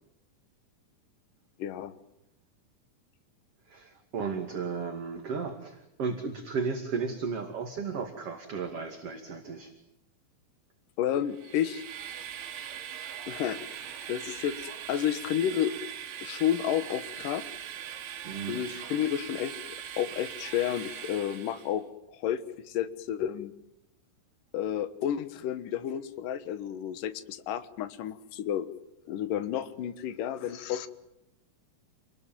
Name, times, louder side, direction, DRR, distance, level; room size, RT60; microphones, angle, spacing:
voice 1, 1.6-1.9 11.0-11.8 13.3-13.6 14.1-15.7 16.2-17.4 18.5-19.6 20.0-21.9 22.1-22.4 22.7-23.5 24.5-28.7 29.1-30.9, left 10 dB, 60° left, 11 dB, 2.4 m, -31 dB
voice 2, 3.7-9.7 18.2-18.7, right 5 dB, 40° right, 4 dB, 2.7 m, -34 dB
Train, 11.3-21.8, right 9 dB, 85° right, 4.3 m, -41 dB
29.5 x 21.0 x 9.2 m, 0.88 s
omnidirectional pair, 5.3 m